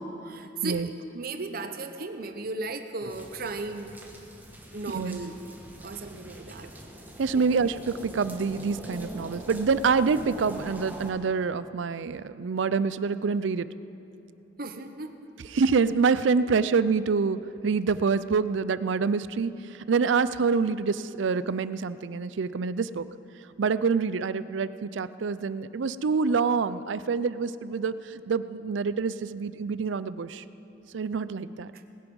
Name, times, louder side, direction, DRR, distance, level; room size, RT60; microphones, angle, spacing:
voice 1, 0.2-4.0 4.7-5.3 5.8-6.7 7.3-7.5 14.6-15.1 31.7-31.8, right 3 dB, 50° right, 8 dB, 0.9 m, -36 dB
sound 1, 3.1-11.1, equal, 10° right, 1.5 m, -43 dB
voice 2, 4.9-5.3 7.2-13.7 15.5-19.5 19.9-23.0 23.6-30.4 30.9-31.7, right 5 dB, 75° right, 15 dB, 0.4 m, -26 dB
20.0 x 11.0 x 5.4 m, 2.9 s
head